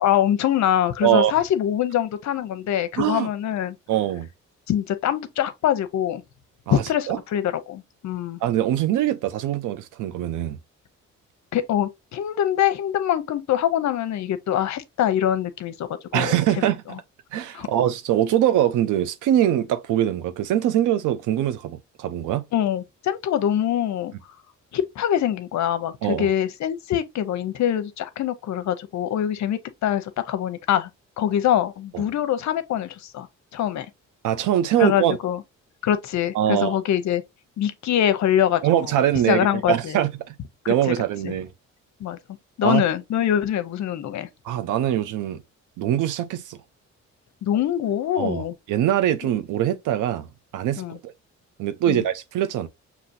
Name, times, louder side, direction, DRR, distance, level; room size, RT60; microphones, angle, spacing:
voice 1, 0.0-3.8 4.7-6.2 6.7-8.4 11.5-16.7 17.5-17.7 22.5-24.1 24.7-30.9 31.2-33.3 33.5-33.9 34.8-35.4 35.8-37.2 37.6-39.0 39.3-40.0 40.6-40.9 41.2-41.3 42.0-42.2 42.6-44.3 47.4-48.5 50.8-51.0 51.9-52.0, left 10 dB, 65° left, 0.7 m, -24 dB
voice 2, 1.0-1.3 3.0-3.3 3.9-4.3 6.7-7.2 8.4-10.6 16.1-17.0 17.3-22.4 26.0-26.3 31.9-32.0 34.2-35.2 36.3-36.8 38.6-40.3 40.7-41.5 42.6-42.8 44.4-45.4 45.8-46.6 48.2-50.3 50.5-51.1 51.6-52.7, right 11 dB, 85° right, 0.7 m, -23 dB
5.9 x 2.8 x 2.6 m
cardioid pair, 90°, 30 cm